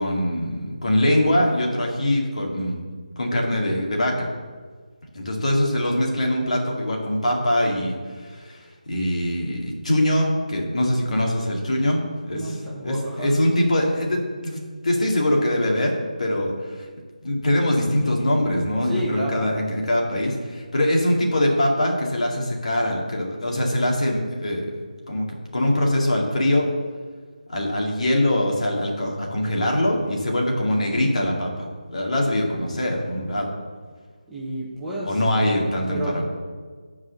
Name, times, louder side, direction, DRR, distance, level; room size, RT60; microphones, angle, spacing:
voice 1, 0.0-2.8 3.2-4.3 5.1-12.0 12.3-12.5 12.8-16.9 17.2-24.7 25.1-25.3 25.5-26.7 27.5-33.5 35.0-36.2, left 1 dB, 55° left, -1 dB, 2.2 m, -23 dB
voice 2, 12.3-13.3 18.8-19.5 34.3-36.2, equal, 5° right, -9 dB, 1.2 m, -31 dB
9.3 x 4.8 x 6.8 m, 1.5 s
figure-of-eight pair, 165°, 4 cm